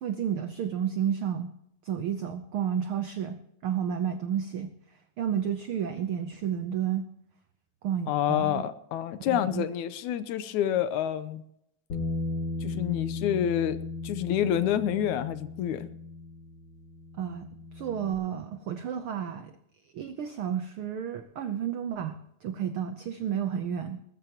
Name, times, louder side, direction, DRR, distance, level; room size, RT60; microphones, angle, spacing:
voice 1, 0.0-1.5 1.8-4.7 5.2-7.0 7.8-8.6 9.3-9.7 17.2-17.5 17.7-19.5 19.9-24.0, right 9 dB, 85° right, 9 dB, 1.1 m, -31 dB
voice 2, 8.1-11.4 12.6-13.8 14.0-15.9, left 10 dB, 80° left, 13 dB, 2.1 m, -28 dB
Bass guitar, 11.9-18.1, left 3 dB, 40° left, 2.9 m, -36 dB
20.0 x 13.5 x 3.0 m, 0.77 s
omnidirectional pair, 3.5 m